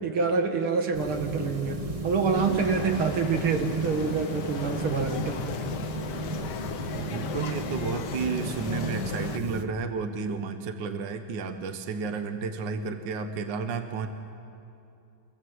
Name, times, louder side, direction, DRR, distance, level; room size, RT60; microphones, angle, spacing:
voice 1, 0.0-1.8 2.0-5.6, right 5 dB, 80° right, 4 dB, 2.9 m, -26 dB
sound 1, 0.9-9.6, right 1 dB, 20° right, 1.2 m, -34 dB
sound 2, 2.3-9.4, left 9 dB, 65° left, 1.3 m, -38 dB
voice 2, 6.9-14.1, right 5 dB, 60° right, 7 dB, 1.8 m, -32 dB
26.5 x 26.5 x 8.0 m, 2.7 s
omnidirectional pair, 2.3 m